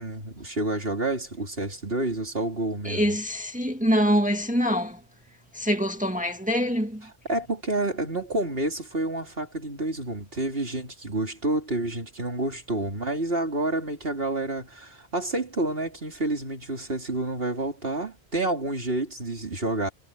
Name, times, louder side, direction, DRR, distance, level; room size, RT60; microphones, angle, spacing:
voice 1, 0.0-3.1 7.0-19.9, right 2 dB, 60° right, 4.0 m, -29 dB
voice 2, 2.8-5.0 5.5-7.0, equal, 5° right, 2.0 m, -24 dB
omnidirectional pair, 1.1 m